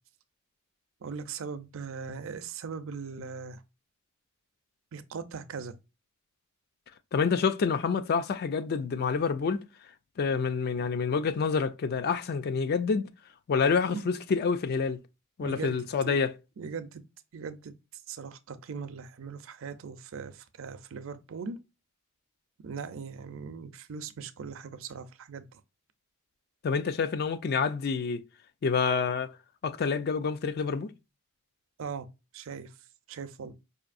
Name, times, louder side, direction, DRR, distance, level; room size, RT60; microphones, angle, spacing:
voice 1, 1.0-3.6 4.9-5.7 13.9-14.0 15.4-16.2 16.6-17.0 17.3-21.6 22.6-25.6 31.8-32.1 32.3-32.7 33.1-33.5, right 5 dB, 65° right, 0.5 m, -40 dB
voice 2, 7.1-9.6 10.2-13.1 13.5-15.0 15.4-16.3 26.6-28.2 28.6-29.3 29.6-30.9, left 5 dB, 45° left, 0.4 m, -27 dB
4.9 x 2.6 x 2.4 m
head